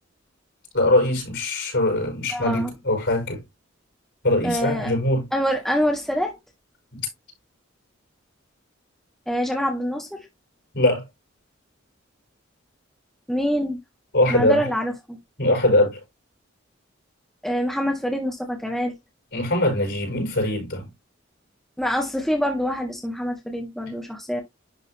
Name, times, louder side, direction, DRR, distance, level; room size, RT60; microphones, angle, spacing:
voice 1, 0.7-3.4 4.2-5.2 6.9-7.1 10.7-11.1 14.1-14.7 15.4-16.0 19.3-20.9, left 1 dB, 65° left, 5.4 m, -22 dB
voice 2, 2.3-2.7 4.4-4.9 5.3-6.4 9.3-10.3 13.3-13.8 14.3-15.2 17.4-18.9 21.8-24.4, equal, ahead, 1.6 m, -25 dB
11.0 x 3.9 x 2.9 m
head